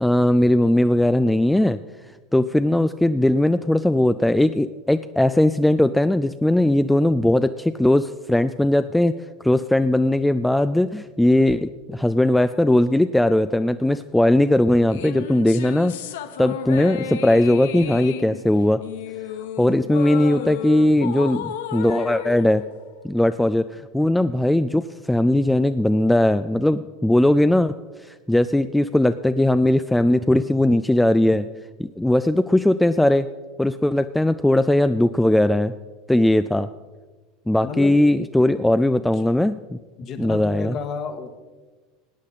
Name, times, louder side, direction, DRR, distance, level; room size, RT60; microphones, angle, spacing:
voice 1, 0.0-1.8 2.3-9.1 9.4-15.9 16.4-18.8 19.6-22.6 23.0-27.7 28.1-31.5 31.8-33.3 33.6-35.7 36.1-36.7 37.5-39.8 40.2-40.8, left 1 dB, 5° left, 11 dB, 0.4 m, -19 dB
sound 1, 14.9-23.5, left 9 dB, 65° left, 0.7 m, -33 dB
voice 2, 37.6-38.0 39.1-39.3 40.0-41.4, left 6 dB, 45° left, 6 dB, 1.6 m, -32 dB
17.5 x 9.7 x 4.1 m, 1.3 s
figure-of-eight pair, 75°, 0 cm